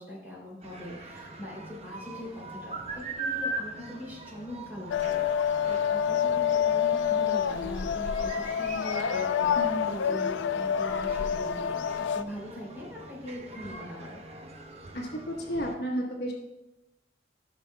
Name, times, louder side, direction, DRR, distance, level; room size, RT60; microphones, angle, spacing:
voice 1, 0.0-14.2, equal, 10° right, -5 dB, 2.9 m, -41 dB
sound 1, 0.6-15.7, right 2 dB, 35° right, 0.8 m, -42 dB
sound 2, 4.9-12.2, left 8 dB, 85° left, 0.4 m, -27 dB
voice 2, 14.9-16.3, equal, 60° left, -1 dB, 1.2 m, -32 dB
14.5 x 6.3 x 2.2 m, 0.98 s
head